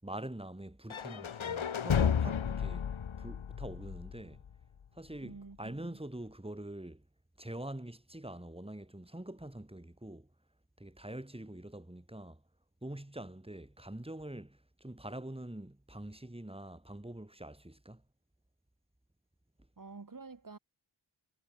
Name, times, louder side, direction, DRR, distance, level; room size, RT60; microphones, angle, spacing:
voice 1, 0.0-2.9 3.2-4.4 4.9-7.0 7.4-10.3 10.8-12.4 12.8-18.0, right 1 dB, 10° right, 7.2 m, -45 dB
sound 1, 0.9-4.8, left 7 dB, 75° left, 1.6 m, -33 dB
voice 2, 5.2-6.0 19.8-20.6, right 4 dB, 45° right, 3.9 m, -49 dB
wide cardioid pair, 90°, 48 cm